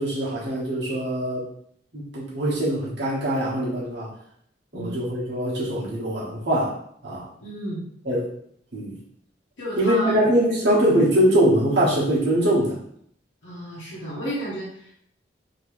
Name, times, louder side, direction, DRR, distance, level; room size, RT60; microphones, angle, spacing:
voice 1, 0.0-1.5 1.9-4.1 4.7-6.8 7.0-7.3 8.0-8.3 8.7-8.9 9.8-12.7, right 1 dB, 60° right, -6 dB, 1.2 m, -22 dB
voice 2, 7.4-7.8 9.6-10.2 10.6-10.7 13.4-14.9, equal, 85° left, -9 dB, 1.0 m, -32 dB
3.0 x 2.9 x 3.1 m, 0.67 s
head